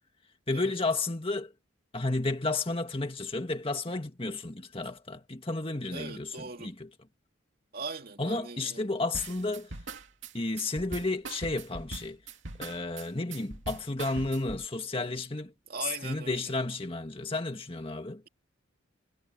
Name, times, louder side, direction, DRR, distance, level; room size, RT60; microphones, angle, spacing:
voice 1, 0.5-1.5 1.9-6.3 6.6-6.9 8.2-9.7 10.3-12.2 12.6-15.5 16.0-18.2, left 2 dB, 25° left, 1.8 m, -32 dB
voice 2, 5.9-6.7 7.7-9.0 15.7-16.5, right 4 dB, 45° right, 2.6 m, -40 dB
sound 1, 9.1-14.7, right 3 dB, 65° right, 2.6 m, -41 dB
head